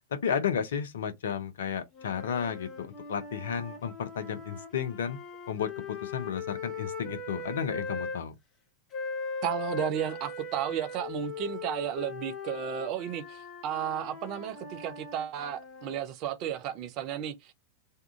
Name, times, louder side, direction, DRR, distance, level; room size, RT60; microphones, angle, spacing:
voice 1, 0.1-5.2 5.5-8.3, left 7 dB, 65° left, 0.6 m, -33 dB
sound 1, 1.9-8.2 8.9-16.0, left 4 dB, 25° left, 0.8 m, -40 dB
voice 2, 9.4-17.5, right 10 dB, 40° right, 0.5 m, -33 dB
2.7 x 2.3 x 3.6 m
figure-of-eight pair, 90°, 0 cm